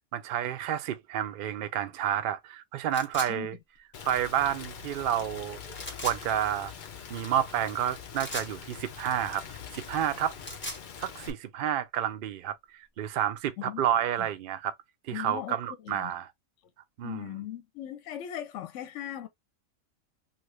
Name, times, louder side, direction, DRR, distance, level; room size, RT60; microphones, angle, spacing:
voice 1, 0.1-3.6 4.0-5.8 6.0-6.7 7.1-9.4 9.7-10.3 11.0-14.7 15.1-16.3 17.0-17.3, right 10 dB, 75° right, 0.5 m, -30 dB
sound 1, 2.9-3.3 5.7-6.2 8.1-8.5 10.2-10.8, equal, 20° left, 0.3 m, -38 dB
Rain, 3.9-11.3, left 7 dB, 90° left, 0.4 m, -43 dB
voice 2, 15.1-16.1 17.0-19.3, left 11 dB, 65° left, 0.8 m, -38 dB
2.8 x 2.5 x 3.0 m
omnidirectional pair, 1.5 m